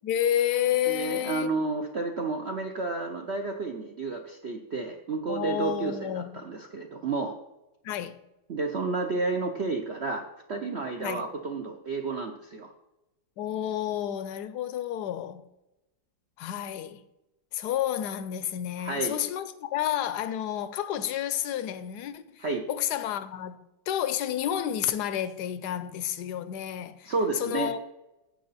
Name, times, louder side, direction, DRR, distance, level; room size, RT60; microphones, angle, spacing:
voice 1, 0.0-1.5 5.3-6.4 7.8-8.2 11.0-11.3 13.4-15.5 16.4-17.0 17.5-27.8, left 11 dB, 70° left, 1.0 m, -30 dB
voice 2, 0.9-7.3 8.5-12.7 18.8-19.2 22.4-22.6 27.0-27.7, right 3 dB, 65° right, 0.6 m, -31 dB
9.6 x 7.6 x 4.0 m
omnidirectional pair, 2.2 m